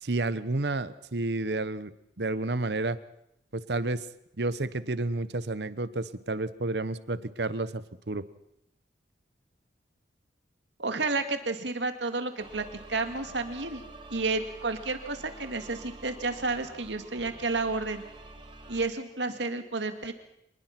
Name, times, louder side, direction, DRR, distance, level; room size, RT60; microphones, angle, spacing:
voice 1, 0.0-1.9 2.2-3.0 3.5-4.1 4.4-8.2, right 2 dB, 65° right, 15 dB, 1.0 m, -30 dB
voice 2, 10.8-13.8 14.1-18.0 18.7-20.1, right 3 dB, 90° right, 7 dB, 2.2 m, -31 dB
sound 1, 12.4-18.9, right 2 dB, 30° right, 2.1 m, -48 dB
26.0 x 20.0 x 6.0 m, 0.79 s
head